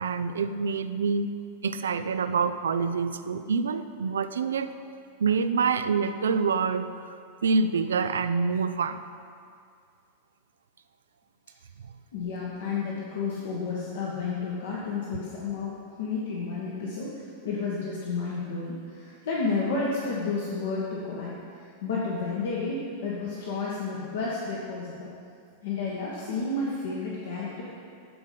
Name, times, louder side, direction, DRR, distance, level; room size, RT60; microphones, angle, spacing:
voice 1, 0.0-1.3 1.6-4.7 5.2-6.9 7.4-9.0, right 5 dB, 65° right, 11 dB, 0.4 m, -26 dB
voice 2, 12.1-25.1 25.6-27.6, left 4 dB, 60° left, -5 dB, 1.5 m, -31 dB
14.5 x 5.0 x 5.7 m, 2.3 s
figure-of-eight pair, 90°, 0 cm